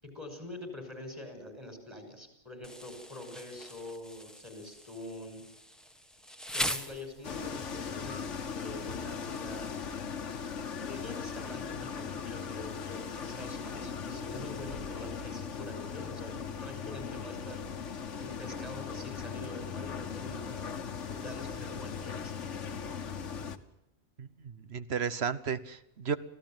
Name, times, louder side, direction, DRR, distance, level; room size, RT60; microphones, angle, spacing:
voice 1, 0.0-5.4 6.5-9.8 10.8-16.3 16.6-17.7 18.2-20.8 21.2-22.3, left 1 dB, 20° right, 5 dB, 6.2 m, -45 dB
Insect, 2.6-7.6, equal, ahead, 1.4 m, -40 dB
sound 1, 7.2-23.6, left 6 dB, 80° left, 1.6 m, -39 dB
voice 2, 24.2-26.2, right 6 dB, 60° right, 13 dB, 1.3 m, -34 dB
26.0 x 16.0 x 9.2 m, 0.83 s
omnidirectional pair, 1.2 m